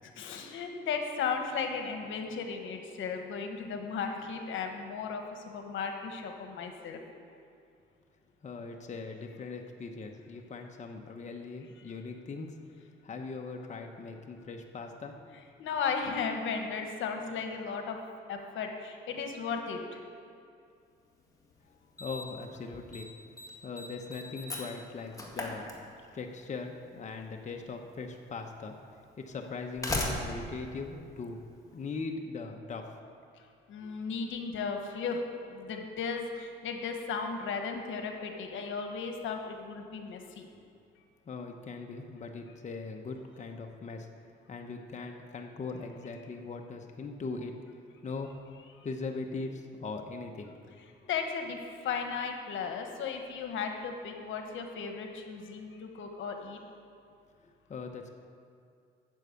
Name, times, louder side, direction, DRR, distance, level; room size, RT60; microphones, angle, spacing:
voice 1, 0.1-7.0 15.6-18.0 18.3-20.0 33.7-40.5 48.8-48.9 51.1-56.6, left 5 dB, 75° left, 4 dB, 1.2 m, -35 dB
voice 2, 8.4-12.7 13.0-15.2 22.0-23.1 23.6-25.7 26.1-28.8 29.2-33.0 33.8-33.9 41.3-44.1 44.5-47.5 48.0-48.4 48.8-50.5 57.4-58.1, left 4 dB, 35° left, 3 dB, 1.0 m, -40 dB
Slam, 21.2-21.3 22.0-22.4 22.7-23.1 23.4-26.3 27.4-27.5 28.4-28.5 29.4-31.8, left 1 dB, 15° left, 1.8 m, -37 dB
8.9 x 6.9 x 8.3 m, 2.4 s
cardioid pair, 90°, 20 cm